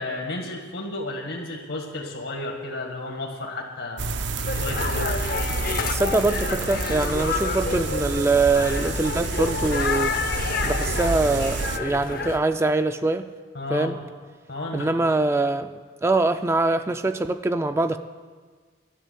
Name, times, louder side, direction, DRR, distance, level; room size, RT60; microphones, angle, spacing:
voice 1, 0.0-4.2 4.5-5.3 13.5-14.0 14.5-15.0, left 2 dB, 80° left, 0 dB, 1.7 m, -32 dB
sound 1, 4.0-11.8, right 4 dB, 65° right, 0.5 m, -29 dB
sound 2, 4.4-12.4, left 5 dB, 50° left, 0.6 m, -29 dB
voice 2, 5.9-10.1 10.6-13.3 13.7-14.0 14.7-15.7 16.0-18.0, right 3 dB, 15° right, 9 dB, 0.3 m, -23 dB
11.5 x 7.2 x 9.3 m, 1.5 s
head